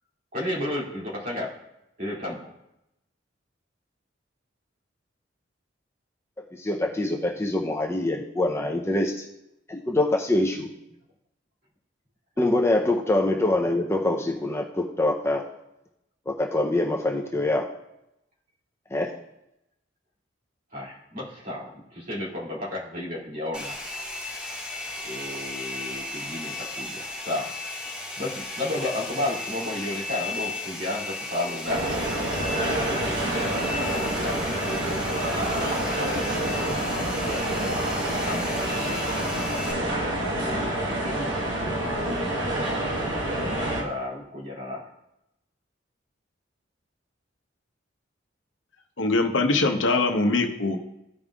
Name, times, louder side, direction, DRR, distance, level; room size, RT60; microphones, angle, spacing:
voice 1, 0.3-1.5 2.0-2.5 12.4-12.5 20.7-23.8 25.0-27.5 28.2-32.0 32.9-35.0 35.8-39.1 40.3-42.3 43.7-44.8, left 1 dB, 45° right, -5 dB, 2.4 m, -33 dB
voice 2, 6.5-9.3 9.7-10.7 12.4-15.4 16.3-17.7 18.9-19.1, left 2 dB, 15° left, 1 dB, 0.5 m, -24 dB
Domestic sounds home sounds, 23.5-39.7, left 2 dB, 5° right, 1.9 m, -35 dB
sound 1, 31.7-43.8, right 1 dB, 70° right, 1.3 m, -27 dB
voice 3, 49.0-50.8, left 3 dB, 80° left, 4 dB, 0.9 m, -22 dB
15.0 x 5.3 x 2.3 m, 0.86 s
head